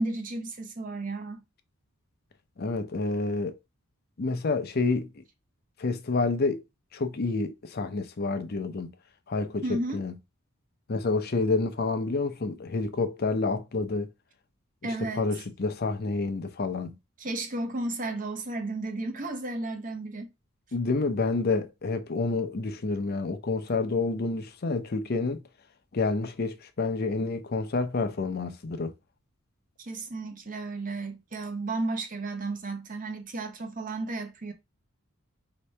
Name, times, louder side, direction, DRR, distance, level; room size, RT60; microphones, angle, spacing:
voice 1, 0.0-1.4 9.6-10.0 14.8-15.2 17.2-20.3 29.8-34.5, right 2 dB, 40° right, 0.7 m, -33 dB
voice 2, 2.6-3.5 4.2-5.1 5.8-6.6 6.9-8.9 9.3-10.1 10.9-14.1 14.8-16.9 20.7-25.4 25.9-28.9, left 3 dB, 45° left, 0.6 m, -28 dB
4.5 x 2.8 x 3.2 m
head